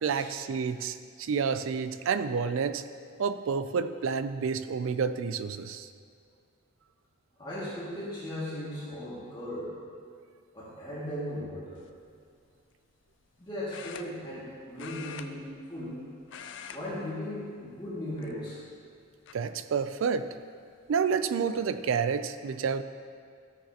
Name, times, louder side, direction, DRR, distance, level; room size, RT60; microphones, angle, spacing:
voice 1, 0.0-2.8 3.2-5.9 19.3-20.3 20.9-22.8, right 6 dB, 65° right, 11 dB, 0.4 m, -29 dB
voice 2, 7.4-9.7 10.5-11.8 13.4-16.0 16.7-18.6, left 1 dB, 20° left, -9 dB, 2.1 m, -37 dB
sound 1, 11.8-12.1 13.7-14.5 14.8-16.0 16.2-16.8 17.1-17.4 18.1-18.7 19.3-19.4 20.8-20.9 21.2-21.6, left 8 dB, 60° left, 0.4 m, -45 dB
13.0 x 7.3 x 2.9 m, 2.2 s
head